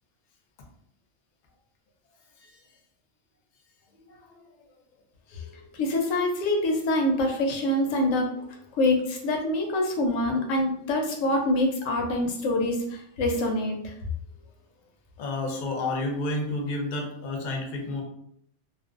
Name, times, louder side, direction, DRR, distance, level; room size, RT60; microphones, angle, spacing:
voice 1, 5.8-8.3 8.8-13.9, left 1 dB, 90° left, 2 dB, 0.9 m, -25 dB
voice 2, 15.2-18.0, left 2 dB, 55° left, 1 dB, 0.5 m, -30 dB
2.4 x 2.1 x 2.4 m, 0.72 s
omnidirectional pair, 1.3 m